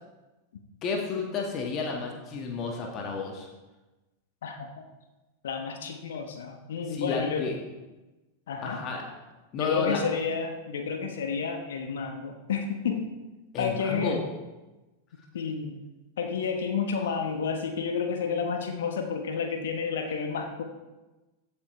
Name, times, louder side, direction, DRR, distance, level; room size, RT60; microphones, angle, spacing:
voice 1, 0.8-3.5 6.9-7.6 8.6-9.0 9.5-10.0 13.5-14.2, left 4 dB, 35° left, 1 dB, 1.7 m, -31 dB
voice 2, 4.4-4.8 5.4-7.5 8.5-8.8 9.6-13.1 13.6-14.2 15.3-15.8 16.2-20.6, left 6 dB, 60° left, 5 dB, 1.2 m, -30 dB
15.0 x 8.5 x 3.2 m, 1.1 s
figure-of-eight pair, 90°, 0 cm